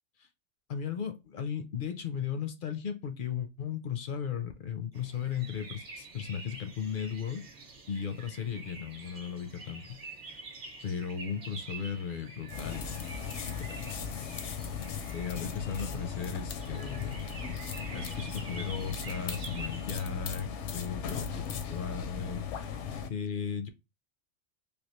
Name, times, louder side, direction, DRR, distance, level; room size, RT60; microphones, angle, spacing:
voice 1, 0.7-7.4 7.9-10.0 10.8-12.9 13.5-13.9 15.1-17.2 17.9-22.7 23.1-23.7, left 7 dB, 60° left, 0.6 m, -36 dB
sound 1, 4.9-20.1, right 3 dB, 45° right, 0.8 m, -47 dB
sound 2, 12.5-23.1, left 6 dB, 80° left, 0.9 m, -37 dB
3.4 x 2.4 x 2.9 m
omnidirectional pair, 1.2 m